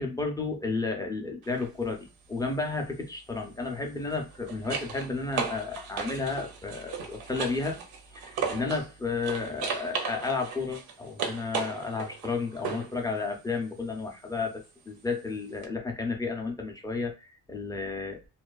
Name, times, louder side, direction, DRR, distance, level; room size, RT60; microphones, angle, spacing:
voice 1, 0.0-7.8 8.1-18.2, left 4 dB, 10° left, 2 dB, 0.3 m, -32 dB
sound 1, 1.4-1.7 4.0-8.9 9.2-13.0 15.6-15.7, right 6 dB, 75° right, 0.7 m, -36 dB
2.4 x 2.3 x 2.2 m, 0.29 s
cardioid pair, 145°, 38 cm